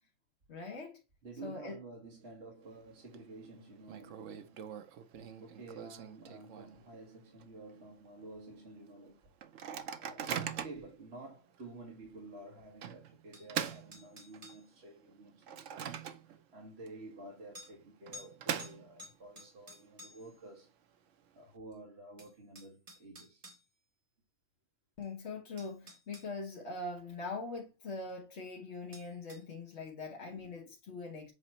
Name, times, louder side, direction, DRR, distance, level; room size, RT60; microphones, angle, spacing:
voice 1, 0.5-1.0 1.4-1.8 25.0-31.3, left 3 dB, 60° left, 1.5 m, -42 dB
voice 2, 1.2-4.6 5.2-9.2 10.0-20.7 21.3-23.5 30.3-30.7, right 2 dB, 55° right, 1.6 m, -51 dB
Microwave oven, 2.6-3.2 3.4-3.5 3.9-7.0 7.4-7.5 7.7-8.1 8.6-8.7 9.4-10.9 11.5-11.7 12.8-14.6 15.1-16.6 16.9-17.0 17.8-19.2, right 8 dB, 70° right, 1.0 m, -41 dB
sound 1, 13.3-14.7 16.1-16.2 17.5-17.7 18.1-18.3 18.6-20.3 21.7-21.8 22.2-23.6 25.0-25.1 25.6-26.3 28.9-29.4, left 2 dB, 30° right, 1.4 m, -52 dB
7.6 x 2.9 x 4.3 m
omnidirectional pair, 1.3 m